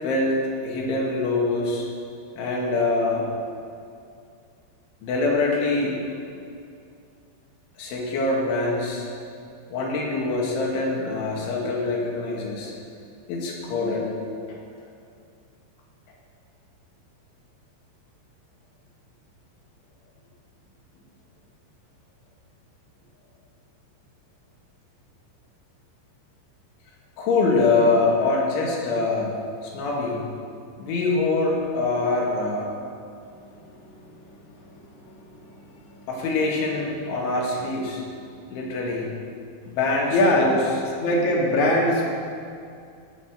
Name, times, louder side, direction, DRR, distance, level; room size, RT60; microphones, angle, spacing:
voice 1, 0.0-1.9 2.4-3.3 5.0-6.0 7.8-9.1 9.7-12.7 13.3-14.1 14.5-14.6 27.2-29.3 29.6-30.2 30.8-32.7 36.1-38.0 38.5-39.1 39.7-40.6, left 3 dB, 80° left, -2 dB, 4.6 m, -24 dB
voice 2, 40.1-40.5 41.0-42.1, left 1 dB, 55° left, -1 dB, 2.5 m, -20 dB
17.5 x 8.1 x 6.5 m, 2.4 s
omnidirectional pair, 5.4 m